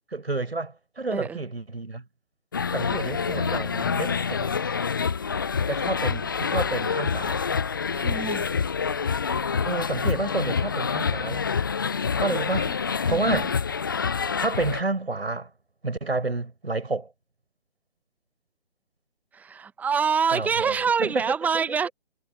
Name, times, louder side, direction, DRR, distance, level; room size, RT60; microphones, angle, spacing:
voice 1, 0.1-2.0 2.7-4.5 5.7-7.4 9.7-11.4 12.2-12.7 13.1-13.5 14.4-15.5 15.8-17.1 20.3-21.3, right 3 dB, 80° right, 6.1 m, -29 dB
voice 2, 1.1-1.4 7.9-8.5 12.3-12.4 12.7-12.8 13.0-13.5 19.3-21.9, right 6 dB, 5° right, 0.9 m, -26 dB
sound 1, 2.5-14.8, left 6 dB, 20° left, 0.4 m, -27 dB
figure-of-eight pair, 140°, 31 cm